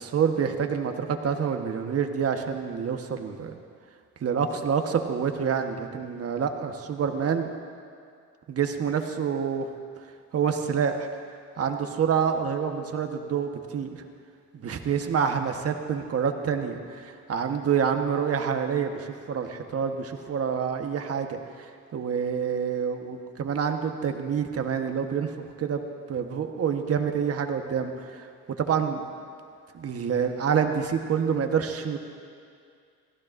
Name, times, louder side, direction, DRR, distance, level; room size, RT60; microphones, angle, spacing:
voice 1, 0.0-3.5 4.2-7.5 8.5-9.7 10.3-11.1 11.6-13.9 14.6-25.8 26.1-28.3 28.6-29.0 29.7-32.0, right 7 dB, 50° right, 5 dB, 1.2 m, -27 dB
24.5 x 15.0 x 2.6 m, 2.3 s
cardioid pair, 90°, 30 cm